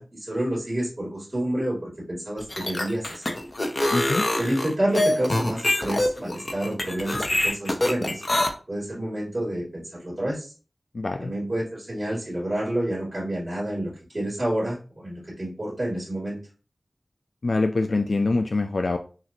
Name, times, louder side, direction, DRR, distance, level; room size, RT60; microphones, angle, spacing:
voice 1, 0.0-3.4 4.4-8.2 8.7-10.5 11.2-16.4, right 1 dB, 45° right, -8 dB, 2.2 m, -29 dB
sound 1, 2.4-8.5, left 1 dB, 45° left, 0.7 m, -24 dB
voice 2, 3.9-4.3 10.9-11.3 17.4-19.0, left 3 dB, 75° left, 6 dB, 0.3 m, -24 dB
5.8 x 2.5 x 2.7 m, 0.36 s
wide cardioid pair, 65°, 0 cm